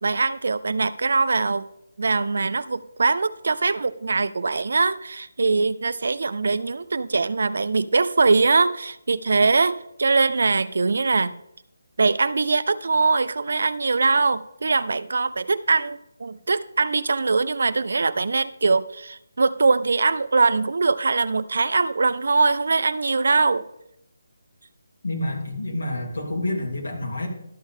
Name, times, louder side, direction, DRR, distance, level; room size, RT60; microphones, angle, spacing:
voice 1, 0.0-1.7 2.0-11.3 12.0-23.7, right 4 dB, 55° right, 16 dB, 0.4 m, -22 dB
voice 2, 25.0-27.3, left 1 dB, 75° left, 0 dB, 3.0 m, -28 dB
12.0 x 7.3 x 3.7 m, 0.81 s
hypercardioid pair, 180°, 0 cm